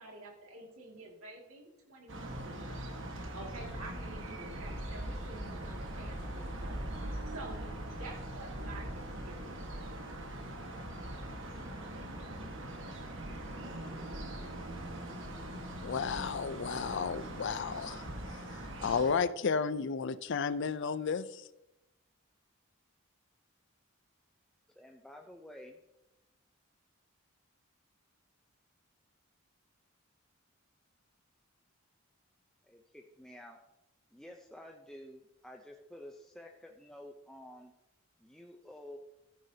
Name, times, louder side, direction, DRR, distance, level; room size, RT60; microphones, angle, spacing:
voice 1, 0.0-7.6 7.9-10.1, right 2 dB, 85° right, 2.3 m, -49 dB
sound 1, 2.1-19.1, right 1 dB, 60° right, 1.5 m, -41 dB
voice 2, 15.8-21.5, left 5 dB, 55° left, 0.5 m, -33 dB
voice 3, 24.8-25.8 32.6-33.6 34.1-37.7 38.2-39.0, left 1 dB, 5° left, 0.6 m, -51 dB
14.5 x 9.2 x 2.8 m
head